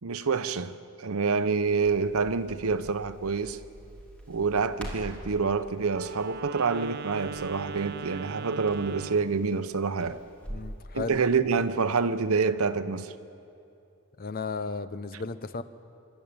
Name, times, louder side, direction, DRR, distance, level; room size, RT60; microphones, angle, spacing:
voice 1, 0.0-3.6 4.3-10.2 10.9-13.1, right 5 dB, 80° right, 0.8 m, -27 dB
Crackle, 1.5-10.7, right 1 dB, 5° left, 3.5 m, -46 dB
Wind instrument woodwind instrument, 5.9-9.4, right 5 dB, 45° right, 0.5 m, -39 dB
voice 2, 10.5-11.2 14.2-15.6, left 4 dB, 40° left, 0.7 m, -34 dB
26.5 x 12.5 x 8.9 m
head